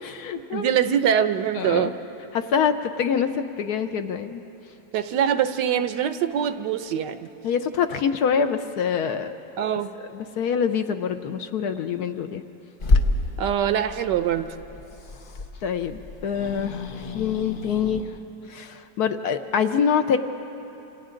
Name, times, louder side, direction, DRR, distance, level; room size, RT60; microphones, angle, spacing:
voice 1, 0.0-0.7 1.5-1.9 2.3-4.4 7.4-9.4 10.1-12.4 15.6-18.0 18.4-20.2, left 7 dB, 65° left, 8 dB, 1.1 m, -25 dB
voice 2, 0.5-2.0 4.9-7.2 9.6-9.9 13.4-14.5, right 9 dB, 75° right, 10 dB, 1.3 m, -23 dB
Growling / Hiss, 12.8-18.0, left 2 dB, 50° left, 0.6 m, -28 dB
27.5 x 27.0 x 3.8 m, 3.0 s
omnidirectional pair, 2.0 m